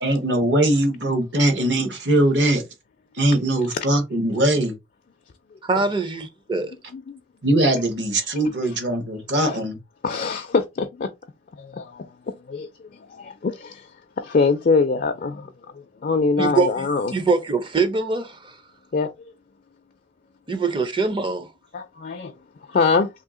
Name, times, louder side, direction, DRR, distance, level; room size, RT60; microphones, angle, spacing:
voice 1, 0.0-2.6 3.1-4.7 7.4-9.8, right 1 dB, 65° right, 1.1 m, -21 dB
voice 2, 5.6-6.7 16.4-18.5 20.5-21.5, right 4 dB, 25° right, 0.5 m, -23 dB
voice 3, 10.0-11.1 11.6-13.9 14.2-17.1 18.9-19.1 21.7-22.3 22.7-23.1, left 4 dB, 50° left, 0.4 m, -24 dB
2.8 x 2.8 x 3.6 m
head